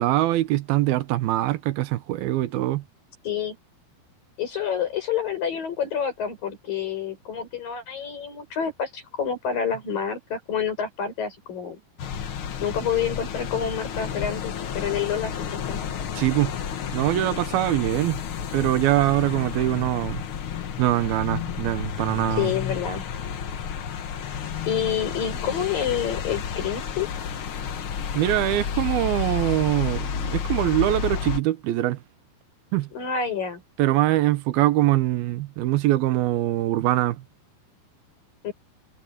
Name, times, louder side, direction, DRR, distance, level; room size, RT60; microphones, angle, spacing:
voice 1, 0.0-2.8 16.2-16.5 16.9-18.2 18.5-20.2 20.8-22.5 28.1-32.0 32.7-32.9 33.8-37.2, right 15 dB, 85° right, 2.8 m, -23 dB
voice 2, 3.2-3.6 4.4-11.8 12.6-15.8 22.4-23.1 24.7-27.1 32.9-33.6 38.4-38.5, left 7 dB, 65° left, 7.9 m, -28 dB
sound 1, 12.0-31.4, left 7 dB, 90° left, 1.1 m, -31 dB
omnidirectional pair, 4.3 m